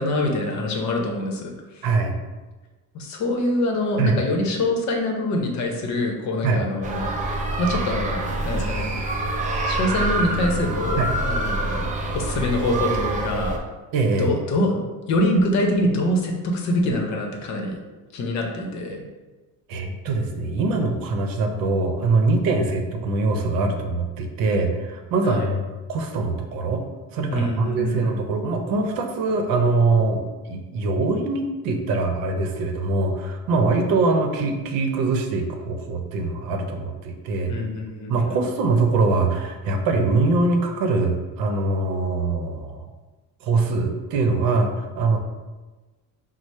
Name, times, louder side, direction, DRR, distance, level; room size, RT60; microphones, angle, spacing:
voice 1, 0.0-1.8 2.9-7.1 7.6-9.0 9.7-13.6 14.2-17.8 18.1-19.0 25.2-25.5 27.3-28.1 37.5-38.2, left 1 dB, 55° left, 2 dB, 0.8 m, -25 dB
voice 2, 1.8-2.1 4.0-4.2 6.4-6.6 11.0-11.1 13.9-14.3 19.7-25.6 25.9-26.8 27.1-30.2 30.5-37.5 38.1-42.9 43.4-45.2, right 3 dB, 75° right, 4 dB, 0.7 m, -23 dB
sound 1, 6.8-13.6, right 2 dB, 25° right, 0.4 m, -26 dB
4.8 x 2.0 x 4.1 m, 1.2 s
cardioid pair, 155°, 35 cm